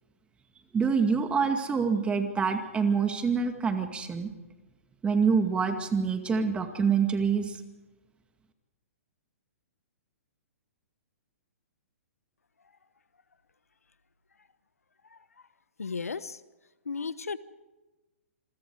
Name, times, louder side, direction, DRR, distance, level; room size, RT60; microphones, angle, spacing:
voice 1, 0.7-4.3 5.0-7.6, right 5 dB, 15° right, 6 dB, 2.1 m, -26 dB
voice 2, 15.8-16.4 16.9-17.4, left 5 dB, 90° left, 16 dB, 1.0 m, -34 dB
27.0 x 22.5 x 4.8 m, 1.1 s
hypercardioid pair, 125°, 8 cm